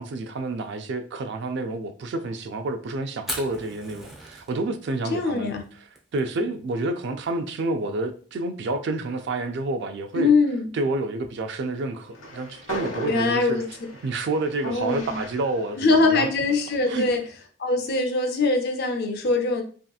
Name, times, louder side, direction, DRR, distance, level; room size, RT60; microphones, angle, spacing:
voice 1, 0.0-5.5 6.1-10.3 10.7-13.6 14.0-16.3 16.9-17.1, right 2 dB, 55° right, 0.3 m, -29 dB
Fire, 3.2-13.0, equal, ahead, 0.5 m, -43 dB
voice 2, 5.1-5.6 10.1-10.7 13.1-13.6 14.6-15.2 15.8-17.2 17.6-19.6, left 3 dB, 50° left, 0.5 m, -22 dB
Train, 12.0-17.3, equal, 90° left, 0.8 m, -39 dB
3.1 x 2.8 x 2.3 m
head